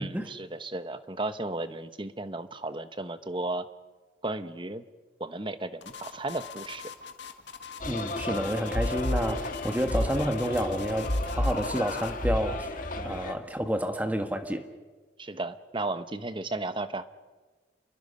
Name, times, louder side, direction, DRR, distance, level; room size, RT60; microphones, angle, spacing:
voice 1, 0.0-3.7 4.2-4.8 5.2-6.8 13.0-13.2 15.2-17.0, right 2 dB, 25° right, 11 dB, 0.9 m, -34 dB
sound 1, 5.8-12.2, left 6 dB, 70° left, 1.7 m, -43 dB
sound 2, 7.8-13.3, left 1 dB, 45° left, 1.7 m, -31 dB
voice 2, 7.9-12.7 13.0-14.6, equal, 10° right, 6 dB, 1.4 m, -29 dB
29.5 x 22.0 x 5.5 m, 1.3 s
head